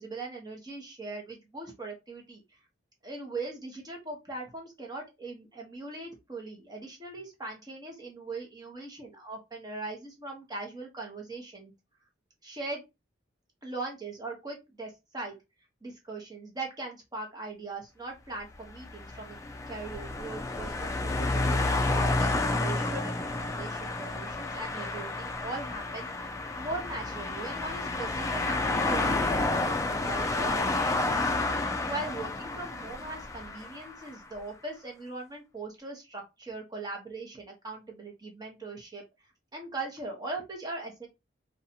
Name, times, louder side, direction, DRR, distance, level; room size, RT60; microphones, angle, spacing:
voice 1, 0.0-2.4 3.0-11.7 12.4-12.8 13.6-15.4 15.8-19.4 19.7-20.7 21.0-26.3 26.6-31.3 31.6-39.0 39.5-41.1, right 3 dB, 20° right, 0 dB, 0.9 m, -40 dB
sound 1, 18.7-34.1, left 2 dB, 20° left, 0.3 m, -30 dB
2.7 x 2.3 x 2.7 m, 0.24 s
head